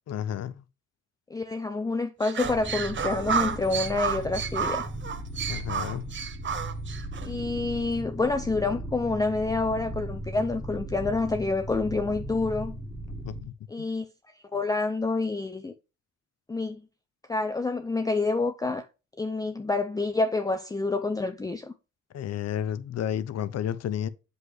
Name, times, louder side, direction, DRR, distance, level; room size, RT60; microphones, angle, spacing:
voice 1, 0.1-0.6 5.5-6.1 13.2-13.5 22.1-24.1, left 10 dB, 55° left, 0.7 m, -31 dB
voice 2, 1.3-4.8 7.2-12.8 13.7-14.1 14.5-15.7 16.5-16.8 17.3-18.8 19.2-21.7, left 3 dB, 10° left, 0.5 m, -28 dB
sound 1, 2.2-7.3, right 7 dB, 40° right, 0.9 m, -31 dB
sound 2, 2.4-13.4, right 1 dB, 5° right, 1.7 m, -37 dB
7.6 x 5.4 x 3.2 m
cardioid pair, 90°, 30 cm